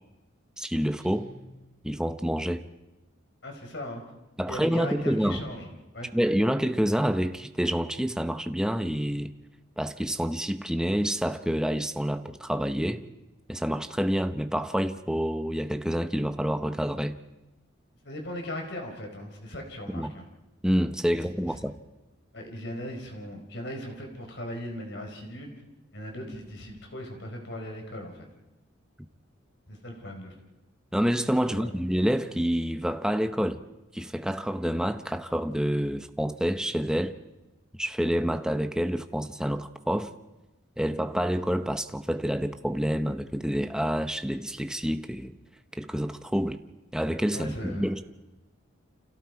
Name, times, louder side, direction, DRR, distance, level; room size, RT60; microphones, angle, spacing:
voice 1, 0.6-1.3 1.8-2.6 4.4-5.4 6.1-9.3 9.8-13.0 13.5-17.2 19.9-20.1 20.6-21.8 30.9-33.6 33.9-37.2 37.8-40.1 40.8-45.4 45.7-46.6 46.9-48.0, equal, 5° right, 0.8 m, -28 dB
Guitar, 1.0-2.2, left 1 dB, 40° right, 4.8 m, -52 dB
voice 2, 3.4-4.0 4.5-5.7 5.9-6.1 18.0-20.3 22.3-25.5 25.9-28.3 29.7-30.3 31.5-31.7 47.3-47.9, left 1 dB, 60° left, 4.3 m, -38 dB
29.5 x 27.0 x 4.7 m
head